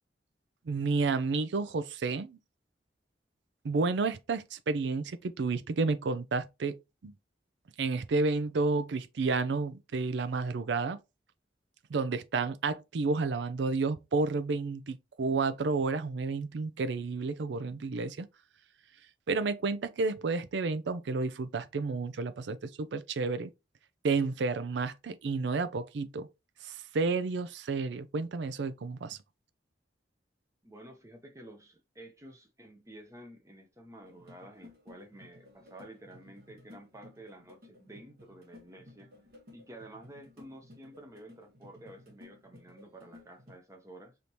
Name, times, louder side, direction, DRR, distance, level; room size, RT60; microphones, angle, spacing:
voice 1, 0.7-2.4 3.6-7.1 7.8-11.0 11.9-18.3 19.3-23.5 24.0-26.3 26.6-29.2, right 4 dB, 80° right, 0.4 m, -31 dB
voice 2, 30.6-39.1 39.5-44.2, right 1 dB, 15° right, 0.7 m, -51 dB
sound 1, 34.0-43.6, left 2 dB, 55° right, 1.4 m, -56 dB
5.0 x 2.7 x 2.9 m
head